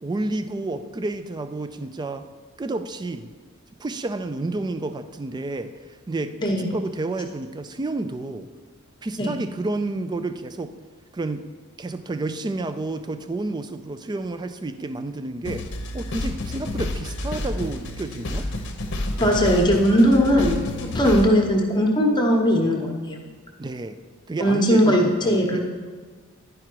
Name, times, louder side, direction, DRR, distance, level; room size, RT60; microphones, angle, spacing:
voice 1, 0.0-2.3 2.6-3.3 3.8-8.5 9.0-10.7 11.1-11.5 11.8-18.5 23.6-24.0 24.3-25.6, right 2 dB, 20° right, 9 dB, 0.3 m, -30 dB
voice 2, 6.4-6.7 9.2-9.3 19.2-23.2 24.4-25.6, equal, 20° left, 1 dB, 1.0 m, -19 dB
sound 1, 15.4-21.3, left 1 dB, 55° left, 0.8 m, -30 dB
11.0 x 4.9 x 4.6 m, 1.5 s
head